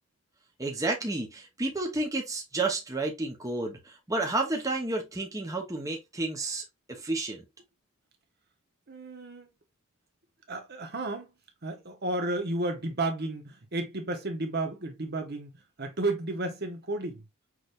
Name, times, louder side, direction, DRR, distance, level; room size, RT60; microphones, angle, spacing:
voice 1, 0.6-7.4, right 2 dB, 15° right, 1.0 m, -31 dB
voice 2, 8.9-9.5 10.5-11.3 11.6-15.5 15.8-17.2, right 2 dB, 50° right, 1.1 m, -32 dB
6.1 x 3.3 x 2.5 m
head